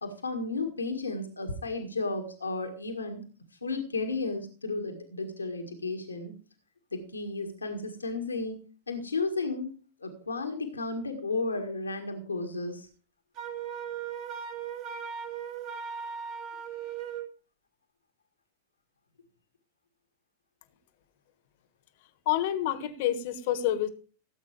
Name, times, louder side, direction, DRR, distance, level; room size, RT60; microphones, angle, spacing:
voice 1, 0.0-3.3 3.6-6.4 6.9-8.6 8.9-12.9, left 3 dB, 80° left, 1.7 m, -33 dB
Wind instrument woodwind instrument, 13.4-17.3, right 7 dB, 40° right, 2.4 m, -37 dB
voice 2, 22.2-23.9, left 12 dB, 50° left, 1.4 m, -28 dB
17.5 x 8.0 x 3.3 m
figure-of-eight pair, 90°, 0 cm